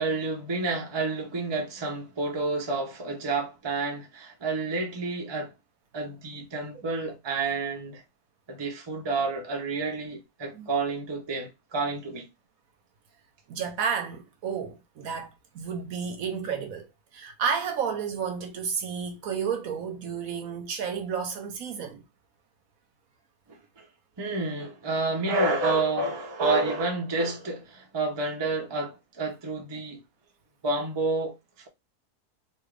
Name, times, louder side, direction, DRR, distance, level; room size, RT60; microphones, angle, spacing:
voice 1, 0.0-5.5 5.9-8.0 8.5-12.3 23.5-23.9 24.2-30.0 30.6-31.4, right 3 dB, 25° right, 0.6 m, -29 dB
voice 2, 13.5-15.3 15.5-16.9 17.1-22.0, right 6 dB, 65° right, 1.1 m, -31 dB
3.6 x 2.7 x 3.2 m
omnidirectional pair, 1.6 m